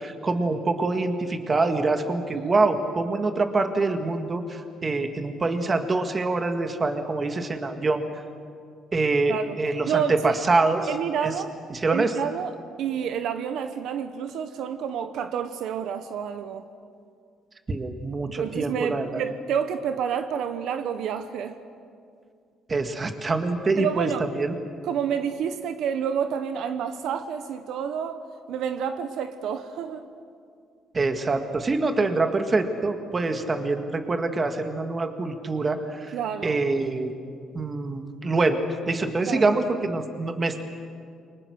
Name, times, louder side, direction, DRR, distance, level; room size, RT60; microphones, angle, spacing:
voice 1, 0.0-8.0 8.9-10.9 11.2-11.3 11.7-12.1 17.7-19.2 22.7-24.5 30.9-36.1 36.4-37.1 37.5-38.6 38.9-40.6, right 3 dB, 25° right, 6 dB, 2.0 m, -25 dB
voice 2, 10.9-11.5 11.9-16.6 18.4-21.6 23.8-24.2 24.8-28.2 28.5-30.1 36.1-36.6 39.3-39.4, right 8 dB, 75° right, 9 dB, 1.1 m, -29 dB
29.0 x 24.0 x 6.5 m, 2.3 s
cardioid pair, 130°, 0 cm